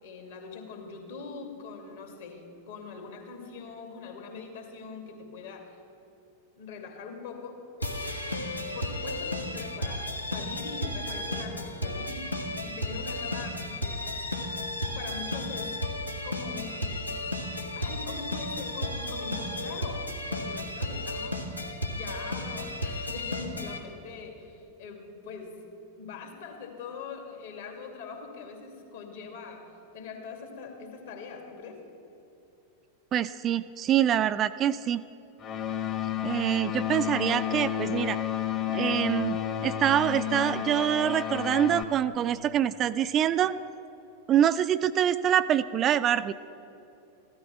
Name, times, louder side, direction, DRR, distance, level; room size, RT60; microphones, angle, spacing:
voice 1, 0.0-5.8 6.6-7.6 8.3-14.0 14.9-15.8 16.2-17.2 17.7-21.4 21.9-25.7 26.0-29.6 29.9-31.8, left 5 dB, 60° left, 3 dB, 2.5 m, -42 dB
sound 1, 7.8-23.8, left 1 dB, 85° left, 1.2 m, -33 dB
voice 2, 33.1-35.0 36.2-38.2 38.7-43.5 44.3-46.3, right 10 dB, 30° right, 13 dB, 0.4 m, -25 dB
sound 2, 35.4-41.8, left 10 dB, 30° left, 1.2 m, -31 dB
15.0 x 12.5 x 6.0 m, 2.9 s
figure-of-eight pair, 90°, 0 cm